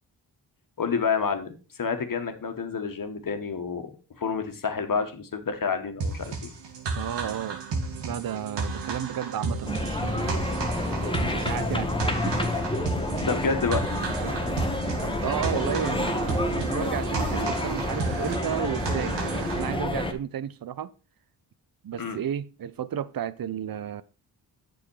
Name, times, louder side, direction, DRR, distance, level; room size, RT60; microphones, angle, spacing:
voice 1, 0.8-3.9 4.2-6.5 13.2-13.8 22.0-22.2, left 5 dB, 45° left, 1.8 m, -29 dB
sound 1, 6.0-19.7, right 3 dB, 70° right, 2.2 m, -33 dB
sound 2, 6.5-19.8, right 12 dB, 85° right, 0.6 m, -40 dB
voice 2, 6.9-7.6 8.0-10.4 11.2-12.5 15.2-20.9 21.8-24.0, right 9 dB, 50° right, 0.8 m, -33 dB
sound 3, 9.6-20.1, left 2 dB, 10° left, 1.4 m, -29 dB
8.6 x 6.4 x 4.8 m
cardioid pair, 55°, 44 cm